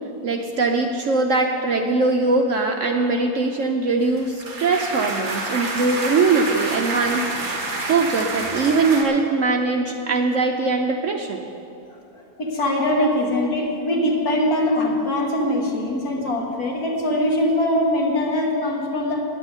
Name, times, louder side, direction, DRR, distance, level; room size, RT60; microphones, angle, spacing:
voice 1, 0.2-7.3 7.9-11.4 13.0-13.1, right 3 dB, 60° right, 3 dB, 0.9 m, -21 dB
sound 1, 4.0-9.0, right 2 dB, 40° right, 1.8 m, -28 dB
voice 2, 12.4-19.2, left 1 dB, 60° left, -1 dB, 2.2 m, -22 dB
9.1 x 8.9 x 9.5 m, 2.6 s
omnidirectional pair, 1.8 m